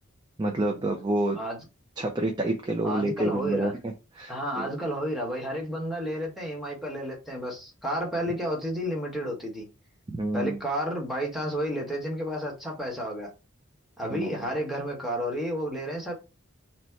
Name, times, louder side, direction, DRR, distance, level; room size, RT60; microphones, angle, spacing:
voice 1, 0.4-1.4 2.0-4.7 10.1-10.6 14.1-14.4, right 2 dB, 20° right, 0.5 m, -28 dB
voice 2, 2.8-3.7 4.3-9.6 10.3-13.3 14.0-16.1, equal, ahead, 1.2 m, -31 dB
4.0 x 2.1 x 4.4 m
head